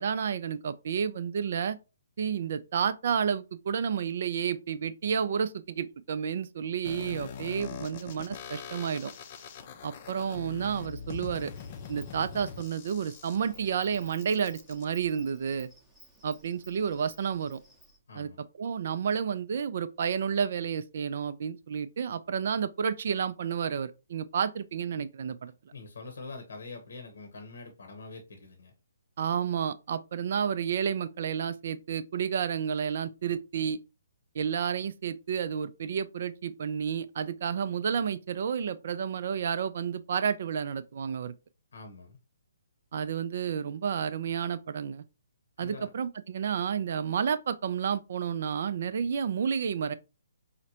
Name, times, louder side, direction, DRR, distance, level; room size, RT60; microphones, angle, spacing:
voice 1, 0.0-1.8 2.2-9.1 9.8-11.5 11.9-15.7 16.2-17.6 18.2-18.3 18.6-25.5 29.2-33.8 34.3-41.3 42.9-45.0 45.6-49.9, right 7 dB, 55° right, 0.3 m, -31 dB
sound 1, 6.8-14.8, left 7 dB, 40° left, 0.5 m, -43 dB
Insect, 10.6-18.0, right 1 dB, 5° right, 0.7 m, -57 dB
voice 2, 18.1-18.4 25.7-28.7 41.7-42.2 45.6-45.9, left 3 dB, 70° left, 0.8 m, -44 dB
4.8 x 2.1 x 2.7 m
figure-of-eight pair, 140°, 0 cm